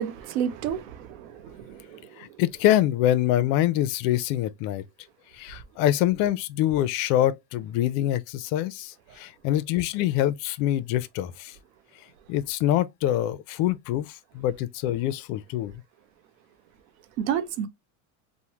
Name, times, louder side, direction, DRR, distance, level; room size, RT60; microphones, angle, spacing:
voice 1, 0.0-2.0 17.2-17.7, right 9 dB, 90° right, 0.7 m, -30 dB
voice 2, 2.2-4.8 5.3-11.6 12.3-15.7, left 12 dB, 60° left, 0.5 m, -25 dB
3.1 x 2.1 x 2.8 m
supercardioid pair, 125°, 39 cm